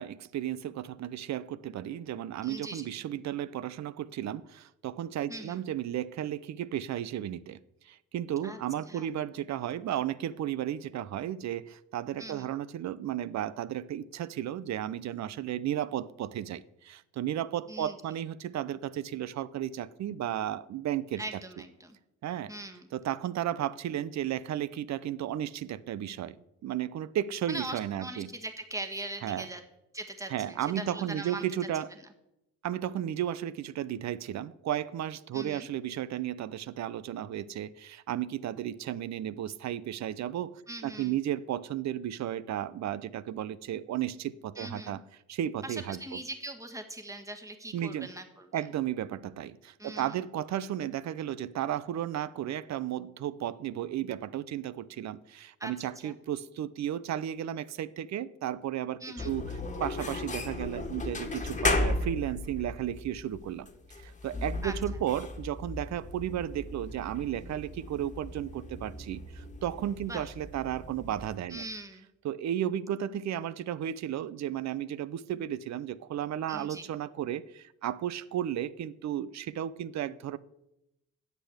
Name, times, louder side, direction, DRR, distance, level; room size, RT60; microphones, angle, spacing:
voice 1, 0.0-7.6 7.8-21.2 22.2-22.5 22.9-26.4 26.6-28.3 29.2-29.5 30.3-31.9 32.6-45.0 45.3-46.2 47.7-48.1 48.5-59.5 59.8-63.7 64.0-71.6 72.2-80.4, right 11 dB, 65° right, 17 dB, 0.7 m, -34 dB
voice 2, 2.4-2.9 5.3-5.6 8.4-8.6 8.9-9.1 12.2-12.5 17.7-18.0 21.2-22.0 22.5-22.9 27.5-29.6 29.9-31.5 35.3-35.7 40.7-41.2 44.6-45.0 45.6-48.6 49.8-50.2 55.6-56.2 59.0-59.3 64.6-65.0 70.1-70.3 71.5-72.1 76.5-76.9, right 1 dB, 10° right, 5 dB, 1.8 m, -41 dB
sound 1, 59.2-71.4, left 2 dB, 25° left, 1.7 m, -36 dB
10.0 x 8.4 x 8.0 m, 0.88 s
cardioid pair, 90°, 30 cm